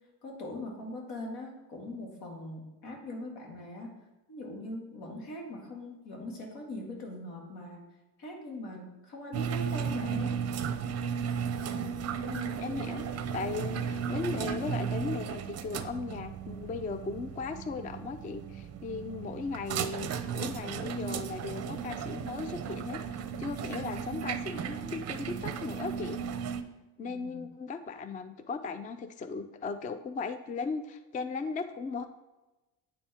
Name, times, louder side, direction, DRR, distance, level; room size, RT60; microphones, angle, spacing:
voice 1, 0.2-3.9 4.3-7.9 8.2-10.4 27.0-27.5, left 1 dB, 75° left, 0 dB, 2.0 m, -41 dB
sound 1, 9.3-26.6, right 7 dB, 40° right, 0.5 m, -35 dB
voice 2, 12.3-26.2 27.0-32.1, left 4 dB, 20° left, 10 dB, 0.3 m, -37 dB
9.0 x 4.2 x 3.5 m, 1.1 s
supercardioid pair, 95°, 42 cm